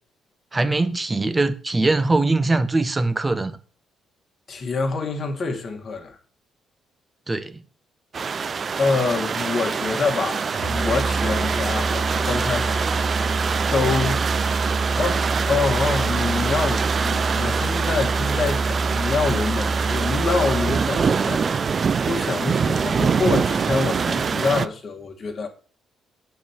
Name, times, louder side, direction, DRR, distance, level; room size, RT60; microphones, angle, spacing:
voice 1, 0.5-3.5 7.3-7.6, right 2 dB, 20° right, 1.0 m, -21 dB
voice 2, 4.5-6.2 8.8-12.9 13.7-14.2 15.0-25.5, left 4 dB, 45° left, 2.1 m, -26 dB
sound 1, 8.1-24.7, right 5 dB, 45° right, 0.4 m, -24 dB
Musical instrument, 10.5-20.9, right 3 dB, 75° right, 2.2 m, -26 dB
8.0 x 4.7 x 7.3 m
cardioid pair, 90°, 0 cm